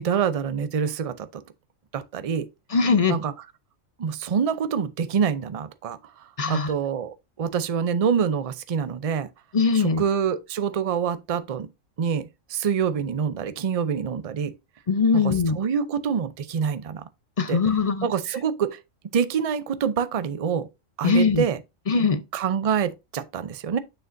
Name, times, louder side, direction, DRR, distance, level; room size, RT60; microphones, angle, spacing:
voice 1, 0.0-1.4 1.9-2.5 3.1-3.3 4.0-6.0 6.5-9.3 9.7-11.7 12.0-14.5 15.1-17.0 17.5-17.6 18.0-18.8 19.1-20.7 21.0-21.6 22.3-23.8, right 7 dB, 45° right, 0.5 m, -26 dB
voice 2, 2.7-3.2 6.4-6.7 9.5-10.0 14.9-15.6 17.4-18.1 21.0-21.5 21.9-22.2, left 4 dB, 40° left, 0.5 m, -21 dB
6.6 x 6.5 x 2.6 m
omnidirectional pair, 1.3 m